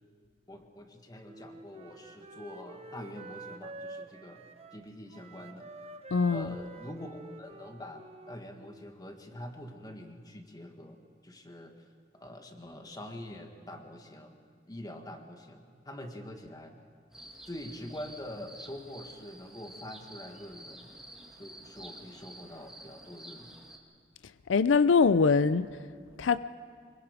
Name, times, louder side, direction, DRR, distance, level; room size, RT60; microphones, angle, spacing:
voice 1, 0.5-6.0 6.3-11.9 12.1-14.4 14.7-16.7 17.4-21.0 21.4-23.5, left 1 dB, 20° left, 1.6 m, -45 dB
Wind instrument woodwind instrument, 1.2-9.0, right 2 dB, 35° right, 1.0 m, -48 dB
voice 2, 6.1-6.5 24.5-25.7 26.2-26.4, left 5 dB, 90° left, 0.5 m, -23 dB
sound 1, 17.1-23.8, right 1 dB, 5° right, 1.8 m, -50 dB
25.0 x 22.0 x 5.1 m
head